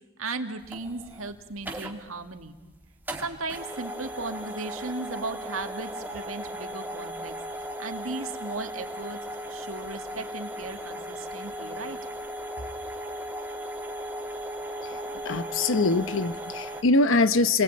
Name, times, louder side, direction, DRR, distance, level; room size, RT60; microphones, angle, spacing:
voice 1, 0.2-2.6 3.2-7.4 7.8-9.2 9.5-12.0, right 3 dB, 75° right, 6 dB, 2.1 m, -36 dB
sound 1, 0.6-16.8, equal, 10° right, 2.0 m, -37 dB
voice 2, 15.2-17.6, left 3 dB, 65° left, 13 dB, 0.8 m, -23 dB
30.0 x 21.0 x 8.7 m, 1.1 s
head